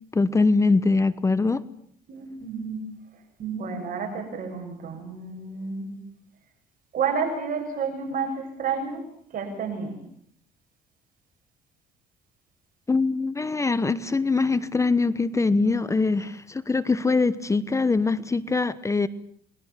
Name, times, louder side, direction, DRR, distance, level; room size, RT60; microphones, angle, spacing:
voice 1, 0.1-1.6 12.9-19.1, left 3 dB, 15° left, 16 dB, 1.0 m, -23 dB
voice 2, 2.1-2.8 3.4-6.0 6.9-9.0 9.3-10.0, right 5 dB, 55° right, 3 dB, 8.0 m, -30 dB
29.0 x 21.5 x 7.5 m, 0.63 s
cardioid pair, 110°, 17 cm